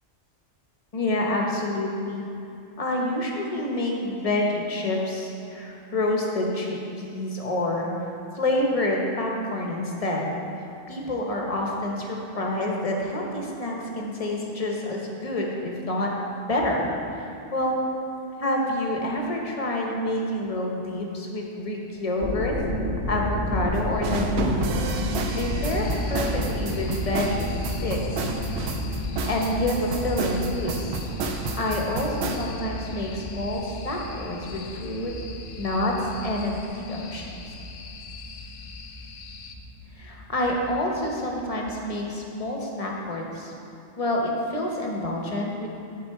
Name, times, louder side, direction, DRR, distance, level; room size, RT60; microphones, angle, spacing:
voice 1, 0.9-2.3 2.8-8.1 8.3-10.3 10.9-16.1 16.5-16.9 17.1-17.8 18.4-22.6 23.1-24.7 25.4-27.5 27.8-28.0 29.3-30.9 31.6-35.1 35.6-37.5 39.9-43.5 44.0-45.7, left 1 dB, 35° left, -1 dB, 0.9 m, -28 dB
sound 1, 22.0-41.7, left 1 dB, 30° right, 1.2 m, -32 dB
sound 2, 24.0-32.4, right 4 dB, 65° right, 0.8 m, -31 dB
sound 3, 25.3-39.6, left 6 dB, 70° left, 0.9 m, -45 dB
10.0 x 4.2 x 4.6 m, 2.8 s
omnidirectional pair, 1.3 m